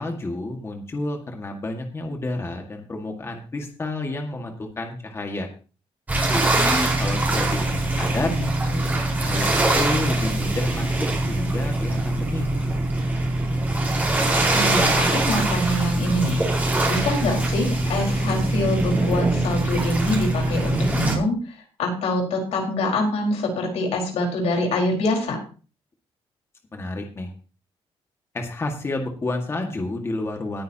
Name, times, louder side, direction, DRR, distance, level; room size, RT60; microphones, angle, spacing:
voice 1, 0.0-5.5 6.3-8.3 9.2-12.6 26.7-27.3 28.3-30.6, left 2 dB, 25° left, 3 dB, 1.8 m, -30 dB
sound 1, 6.1-21.1, right 2 dB, 15° right, 4.6 m, -23 dB
voice 2, 7.7-9.0 14.3-25.4, left 1 dB, 85° left, 1 dB, 4.7 m, -25 dB
19.0 x 9.4 x 2.9 m, 0.37 s
cardioid pair, 140°, 11 cm